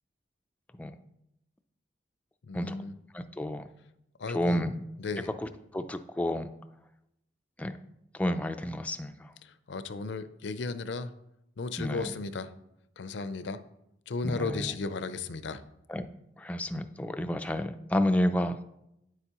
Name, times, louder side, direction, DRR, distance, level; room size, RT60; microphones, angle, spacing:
voice 1, 2.5-2.9 4.2-4.7 5.0-5.3 9.4-11.1 11.6-12.5 13.0-13.6 14.1-15.6, left 3 dB, 80° left, 13 dB, 0.5 m, -35 dB
voice 2, 3.1-3.6 4.3-4.8 5.4-6.5 7.6-7.7 8.1-9.3 11.8-12.1 14.2-14.7 15.9-16.1 16.4-18.6, left 1 dB, 10° left, 8 dB, 0.3 m, -30 dB
9.3 x 8.0 x 2.9 m, 0.82 s
head